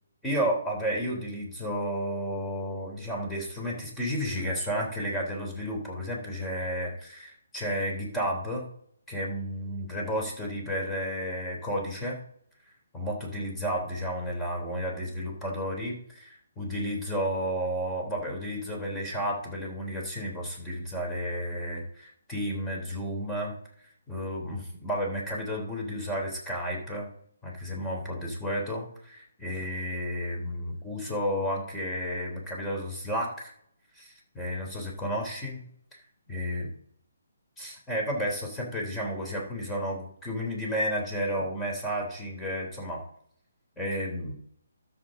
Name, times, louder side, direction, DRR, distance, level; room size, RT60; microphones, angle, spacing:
voice 1, 0.2-8.7 9.1-12.2 12.9-23.5 24.1-27.1 27.4-33.5 34.0-35.6 36.3-36.7 37.6-43.0 43.8-44.3, equal, 10° left, -2 dB, 3.4 m, -32 dB
13.0 x 6.9 x 3.9 m, 0.66 s
figure-of-eight pair, 145°, 0 cm